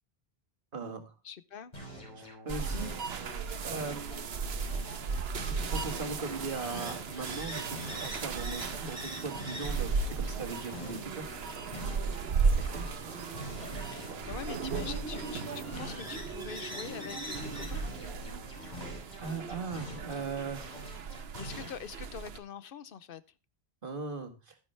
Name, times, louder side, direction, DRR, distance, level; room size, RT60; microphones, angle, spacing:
voice 1, 0.7-1.1 2.2-2.9 3.6-4.3 5.4-11.6 12.4-12.9 19.2-20.6 23.8-24.6, right 4 dB, 55° right, 6 dB, 2.0 m, -39 dB
voice 2, 1.2-1.7 13.8-17.9 21.4-23.2, left 7 dB, 65° left, 16 dB, 0.9 m, -44 dB
sound 1, 1.7-4.3 4.6-8.3 8.6-12.3 12.6-16.3 16.6-20.3 20.6-21.7, equal, 45° left, 4.0 m, -46 dB
sound 2, 2.5-22.4, right 5 dB, 75° right, 1.1 m, -36 dB
sound 3, 4.5-17.7, equal, 15° right, 3.6 m, -46 dB
11.5 x 9.8 x 3.2 m, 0.31 s
omnidirectional pair, 1.1 m